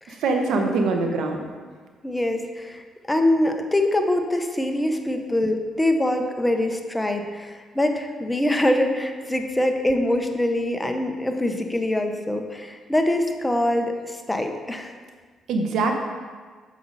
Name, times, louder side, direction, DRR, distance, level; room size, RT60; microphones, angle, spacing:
voice 1, 0.2-1.4 15.5-16.0, right 3 dB, 80° right, 4 dB, 1.0 m, -23 dB
voice 2, 2.0-14.9, left 1 dB, 10° left, 5 dB, 0.8 m, -24 dB
8.4 x 6.7 x 4.1 m, 1.5 s
cardioid pair, 90°, 0 cm